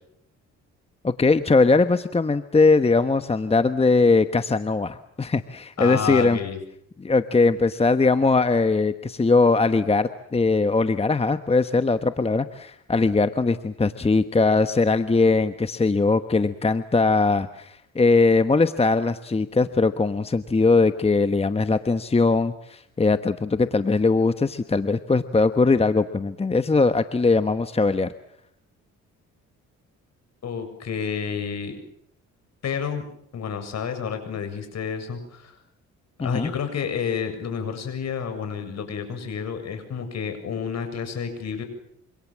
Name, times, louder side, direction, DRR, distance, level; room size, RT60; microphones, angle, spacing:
voice 1, 1.0-6.4 7.0-28.1 36.2-36.5, left 3 dB, 20° left, 10 dB, 1.2 m, -20 dB
voice 2, 5.8-6.6 30.4-31.8 32.6-33.0 33.3-35.5 36.2-41.6, left 6 dB, 60° left, 8 dB, 7.5 m, -30 dB
27.0 x 26.0 x 7.5 m, 0.73 s
cardioid pair, 90°, 30 cm